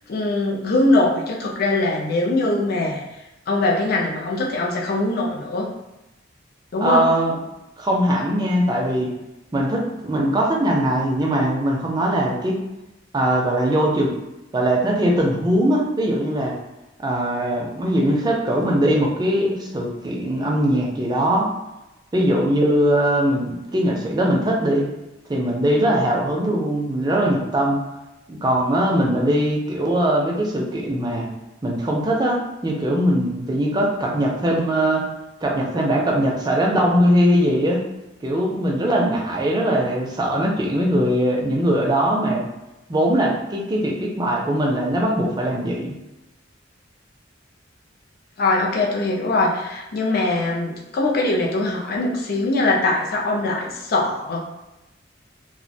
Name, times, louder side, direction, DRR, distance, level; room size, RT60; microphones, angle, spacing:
voice 1, 0.1-3.0 3.5-5.7 6.7-7.0 48.4-54.4, left 2 dB, 50° left, -1 dB, 0.4 m, -22 dB
voice 2, 6.8-7.3 7.8-9.1 9.5-12.6 13.1-14.1 14.5-16.5 17.0-21.5 22.1-24.9 25.3-27.8 28.3-31.3 31.6-35.1 35.4-37.8 38.2-42.4 42.9-46.0, right 1 dB, 20° right, -1 dB, 0.4 m, -21 dB
2.2 x 2.1 x 2.6 m, 0.97 s
head